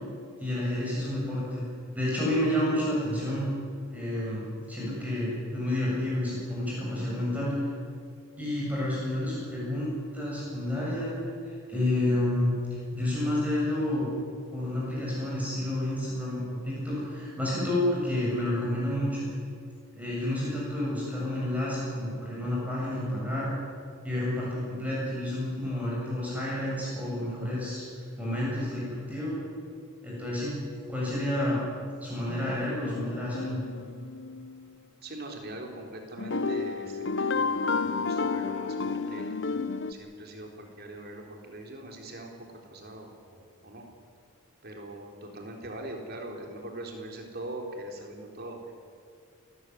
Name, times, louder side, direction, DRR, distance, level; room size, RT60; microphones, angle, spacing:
voice 1, 0.4-1.6 1.9-3.5 3.9-7.7 8.4-11.1 11.7-12.6 12.9-14.1 14.5-19.3 19.9-23.5 24.0-27.8 28.2-29.3 30.0-30.6 30.9-31.6 32.0-33.6, left 1 dB, 5° right, -6 dB, 7.5 m, -30 dB
sound 1, 32.3-34.7 36.2-39.9, left 4 dB, 55° left, 1.0 m, -31 dB
voice 2, 35.0-39.4 39.9-42.3 42.7-43.8 44.6-48.7, right 1 dB, 45° right, 2 dB, 3.9 m, -42 dB
28.5 x 14.5 x 9.6 m, 2.3 s
head